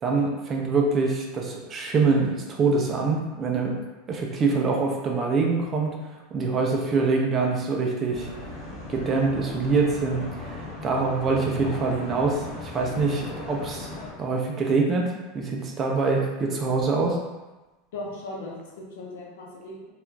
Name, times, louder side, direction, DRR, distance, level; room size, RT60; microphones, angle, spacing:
voice 1, 0.0-3.8 4.1-5.9 6.3-8.3 8.9-13.9 14.2-17.2, right 4 dB, 20° right, 0 dB, 0.3 m, -24 dB
sound 1, 8.1-14.1, left 2 dB, 40° left, 0.9 m, -37 dB
voice 2, 17.9-19.9, left 2 dB, 75° left, -3 dB, 0.7 m, -38 dB
2.3 x 2.3 x 3.1 m, 1.1 s
supercardioid pair, 170°, 0 cm